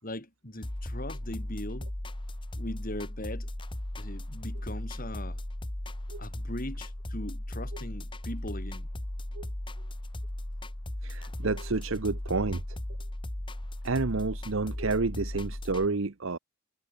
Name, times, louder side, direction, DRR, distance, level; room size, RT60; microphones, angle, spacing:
voice 1, 0.0-1.9 2.6-3.5 4.0-5.4 6.2-8.9, left 1 dB, 40° left, 4.2 m, -40 dB
sound 1, 0.6-15.9, left 1 dB, 20° left, 1.1 m, -37 dB
voice 2, 11.0-12.8 13.8-16.4, right 3 dB, 60° right, 0.8 m, -30 dB
head